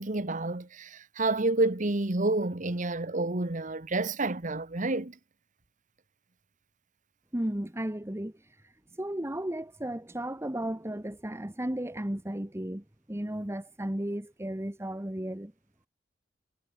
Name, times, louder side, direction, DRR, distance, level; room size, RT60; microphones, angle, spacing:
voice 1, 0.0-5.2, right 2 dB, 45° right, 1.4 m, -29 dB
voice 2, 7.3-8.3 9.0-15.5, right 1 dB, 15° right, 1.3 m, -34 dB
head